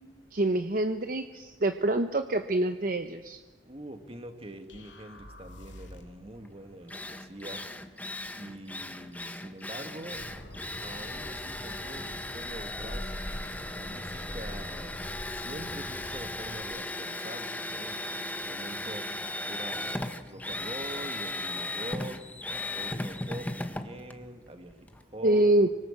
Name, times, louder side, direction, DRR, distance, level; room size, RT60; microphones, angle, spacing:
voice 1, 0.3-3.4 25.2-25.7, right 1 dB, 50° right, 8 dB, 0.9 m, -26 dB
voice 2, 3.7-7.7 8.3-10.3 10.8-13.1 13.7-15.0 15.3-22.3 22.7-25.5, right 1 dB, 30° right, 6 dB, 2.2 m, -44 dB
sound 1, 4.7-6.3, left 1 dB, 85° left, 2.9 m, -48 dB
Drill, 6.4-6.5 6.9-25.0, left 1 dB, 10° left, 1.2 m, -37 dB
Bird, 10.1-16.6, equal, 60° left, 5.7 m, -43 dB
26.5 x 24.5 x 7.5 m, 1.2 s
head